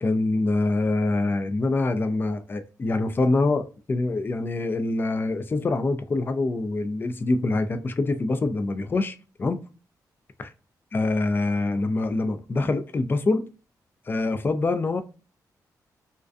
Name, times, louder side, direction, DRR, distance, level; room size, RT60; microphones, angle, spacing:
voice 1, 0.0-9.6 10.9-13.5 14.1-15.0, left 2 dB, 30° left, 0.3 m, -25 dB
2.4 x 2.1 x 2.4 m
cardioid pair, 85°, 7 cm